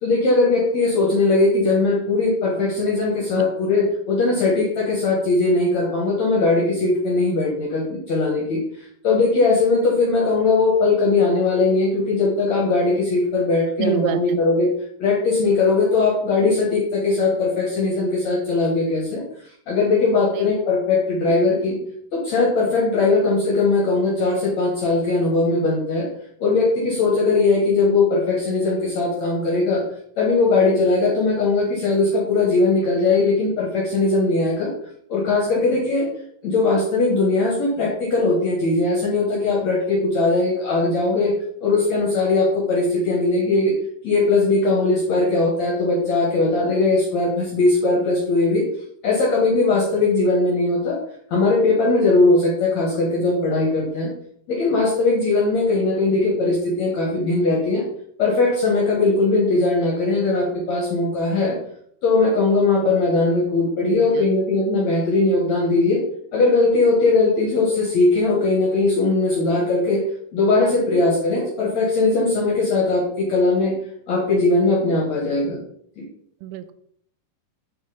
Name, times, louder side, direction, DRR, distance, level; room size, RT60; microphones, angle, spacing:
voice 1, 0.0-8.6 9.0-14.7 15.0-19.2 19.7-21.8 22.1-26.1 26.4-29.8 30.2-34.7 35.1-36.1 36.4-41.3 41.6-43.7 44.0-48.6 49.0-51.0 51.3-54.1 54.5-57.8 58.2-61.5 62.0-66.0 66.3-70.0 70.3-73.7 74.1-75.6 76.0-76.1, left 3 dB, 75° left, -2 dB, 1.6 m, -19 dB
voice 2, 13.8-14.4 20.3-20.5 63.8-64.0 76.4-76.7, right 12 dB, 85° right, 11 dB, 2.9 m, -27 dB
9.1 x 3.3 x 5.0 m, 0.65 s
omnidirectional pair, 5.5 m